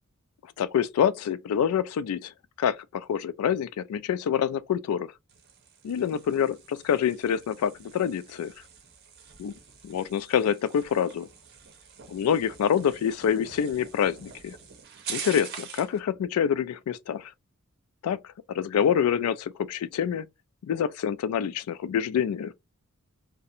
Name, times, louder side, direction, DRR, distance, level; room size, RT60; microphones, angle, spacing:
voice 1, 0.6-2.3 2.6-5.1 5.8-8.5 9.4-9.5 9.8-11.3 12.1-14.6 15.1-17.3 18.0-18.2 18.5-20.3 20.6-22.5, left 8 dB, 80° left, 0.3 m, -26 dB
sound 1, 5.3-16.0, right 7 dB, 50° right, 0.7 m, -44 dB
2.4 x 2.1 x 2.7 m
head